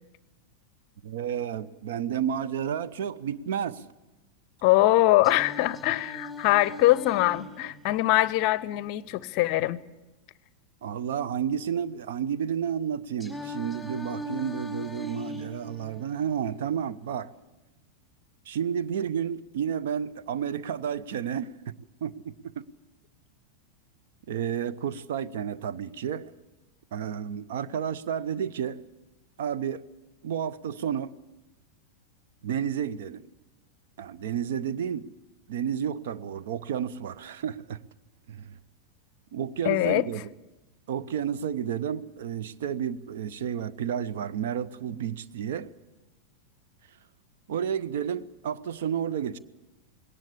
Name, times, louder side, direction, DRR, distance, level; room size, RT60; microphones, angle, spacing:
voice 1, 1.0-3.8 10.8-17.3 18.5-21.7 22.0-22.7 24.3-26.3 26.9-28.8 29.4-29.8 30.2-31.1 32.4-33.3 34.0-35.1 35.5-37.8 38.3-38.6 39.3-40.2 40.9-45.7 47.5-49.4, right 8 dB, 55° right, 0.7 m, -31 dB
voice 2, 4.6-9.8 39.6-40.0, left 16 dB, 45° left, 0.6 m, -23 dB
Singing, 5.2-9.2 13.2-17.2, equal, 10° right, 3.9 m, -40 dB
19.5 x 18.0 x 8.4 m
figure-of-eight pair, 90°, 0 cm